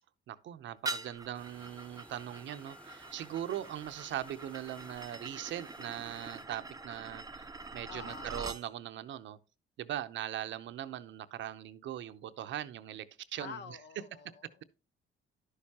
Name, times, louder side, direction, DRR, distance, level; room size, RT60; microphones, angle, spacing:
voice 1, 0.3-9.4 9.8-13.1 13.3-13.6, right 11 dB, 70° right, 0.7 m, -40 dB
sound 1, 0.8-8.6, right 3 dB, 20° right, 0.6 m, -44 dB
sound 2, 1.3-6.4, equal, 5° left, 0.9 m, -58 dB
voice 2, 7.9-8.5 13.4-14.6, left 7 dB, 65° left, 0.8 m, -48 dB
11.0 x 6.6 x 2.8 m
cardioid pair, 90°, 20 cm